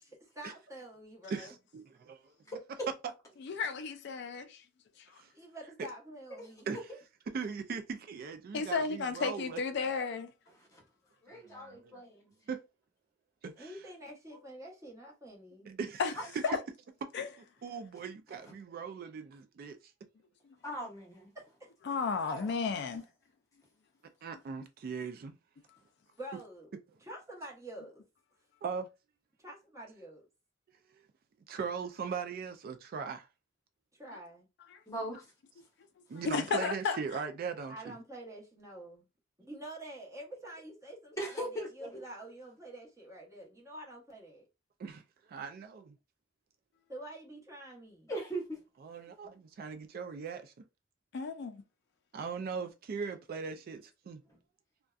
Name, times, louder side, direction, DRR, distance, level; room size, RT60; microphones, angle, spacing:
voice 1, 0.2-1.5 5.3-6.7 13.6-15.7 21.3-21.7 26.1-26.7 27.0-28.0 29.4-30.2 33.9-34.5 37.7-39.1 39.4-44.4 46.9-48.1, right 1 dB, 15° right, 0.9 m, -47 dB
voice 2, 1.3-2.3 5.2-5.3 6.7-6.9 7.3-9.6 11.3-11.9 12.5-12.6 13.4-13.7 15.7-16.1 17.6-19.8 24.2-25.4 28.6-28.9 31.5-33.3 35.0-35.2 36.1-38.0 44.8-45.0 45.3-46.0 48.8-50.5 52.1-54.2, right 5 dB, 50° right, 0.3 m, -39 dB
voice 3, 3.4-4.6 8.5-10.3 16.0-16.1 17.1-17.3 21.9-23.0 34.7-34.8 36.2-37.0 51.1-51.6, left 5 dB, 60° left, 0.4 m, -33 dB
voice 4, 11.2-12.3 14.3-14.4 16.5-16.6 20.6-21.3 22.3-22.6 34.9-35.3 41.2-42.0 48.1-48.6 49.2-49.3, right 1 dB, 15° left, 0.9 m, -39 dB
2.6 x 2.2 x 2.3 m
head